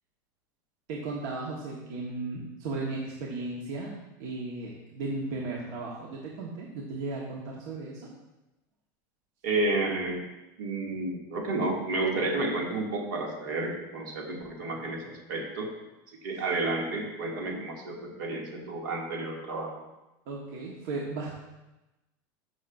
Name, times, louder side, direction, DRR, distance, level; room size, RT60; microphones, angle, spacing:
voice 1, 0.9-8.1 16.3-16.4 20.3-21.3, right 3 dB, 65° right, -3 dB, 1.4 m, -36 dB
voice 2, 9.4-10.2 10.6-15.7 16.2-19.7, right 2 dB, 85° right, -2 dB, 2.4 m, -31 dB
13.0 x 6.2 x 2.6 m, 1.0 s
supercardioid pair, 140°, 10 cm